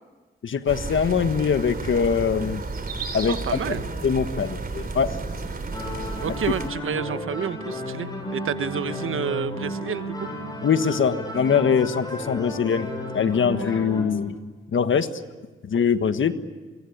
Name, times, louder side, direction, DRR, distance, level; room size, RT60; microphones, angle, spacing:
voice 1, 0.4-2.6 3.1-3.6 4.0-5.1 10.6-14.4 14.7-15.1 15.6-16.3, left 6 dB, 70° left, 10 dB, 1.5 m, -22 dB
sound 1, 0.7-6.7, right 3 dB, 45° right, 3.4 m, -32 dB
voice 2, 3.3-3.8 6.2-10.1, right 7 dB, 75° right, 11 dB, 1.2 m, -29 dB
sound 2, 5.7-14.0, left 1 dB, 20° left, 7.8 m, -33 dB
27.0 x 23.0 x 8.6 m, 1.3 s
wide cardioid pair, 95°, 21 cm